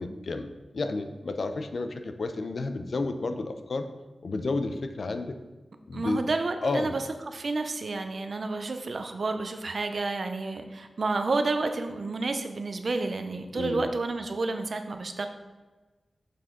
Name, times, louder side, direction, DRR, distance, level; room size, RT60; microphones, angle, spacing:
voice 1, 0.0-3.9 4.2-5.4 5.9-6.3 6.6-6.9 13.5-13.9, left 3 dB, 70° left, 8 dB, 0.6 m, -31 dB
voice 2, 5.9-15.3, right 3 dB, 65° right, 7 dB, 0.7 m, -30 dB
6.8 x 6.3 x 3.8 m, 1.2 s
cardioid pair, 55°, 0 cm